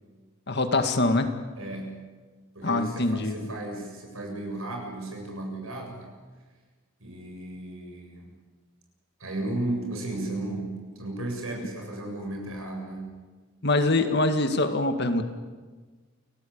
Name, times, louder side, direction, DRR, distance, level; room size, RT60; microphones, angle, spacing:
voice 1, 0.5-1.3 2.6-3.5 13.6-15.2, left 2 dB, 50° left, 7 dB, 2.0 m, -24 dB
voice 2, 1.6-2.1 2.5-6.1 7.0-8.3 9.2-13.2 13.9-14.1, right 2 dB, 70° right, 2 dB, 7.6 m, -35 dB
29.0 x 18.0 x 8.8 m, 1.4 s
head